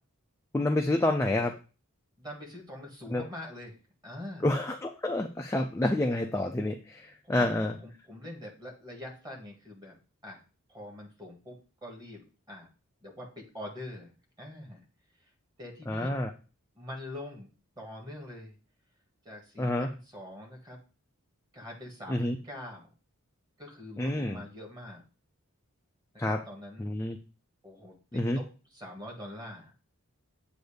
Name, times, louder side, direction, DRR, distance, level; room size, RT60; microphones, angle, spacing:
voice 1, 0.5-1.5 3.1-3.2 4.4-7.7 15.9-16.3 19.6-19.9 22.1-22.4 24.0-24.4 26.2-26.4 26.8-27.2 28.1-28.4, left 1 dB, 10° left, 3 dB, 0.4 m, -28 dB
voice 2, 2.2-3.8 4.0-4.5 7.2-10.4 10.7-12.7 13.0-14.1 14.4-14.8 15.6-16.1 16.7-17.5 17.7-18.6 19.2-20.8 21.5-22.9 23.6-25.0 26.2-26.9 27.6-29.7, left 1 dB, 20° right, 0 dB, 1.7 m, -44 dB
7.8 x 2.7 x 5.0 m, 0.34 s
head